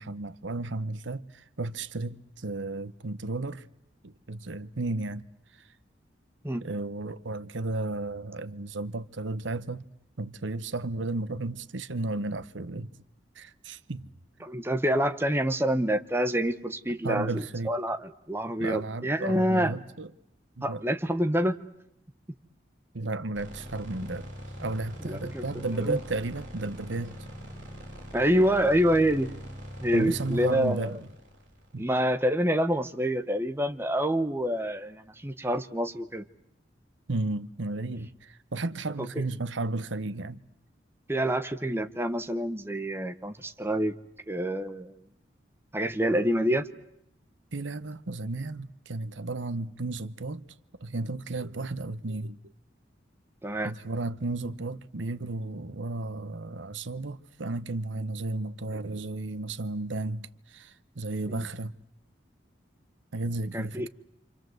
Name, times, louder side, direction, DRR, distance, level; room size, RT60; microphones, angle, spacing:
voice 1, 0.0-3.7 4.0-5.3 6.6-9.9 10.2-12.9 13.3-14.1 17.0-17.8 18.6-20.1 20.6-20.8 22.9-24.3 24.6-27.1 29.9-31.0 31.7-31.9 37.1-40.4 47.5-50.4 50.8-52.4 53.6-61.7 63.1-63.9, right 2 dB, 80° right, 1.0 m, -33 dB
voice 2, 14.4-19.7 20.6-21.6 25.0-26.0 28.1-29.3 29.8-31.0 31.8-36.2 39.0-39.2 41.1-44.0 44.3-45.0 45.7-46.7 53.4-53.7 61.3-61.5 63.5-63.9, equal, 10° right, 1.0 m, -27 dB
sound 1, 23.3-32.5, equal, 40° right, 6.2 m, -43 dB
28.5 x 26.5 x 7.9 m
head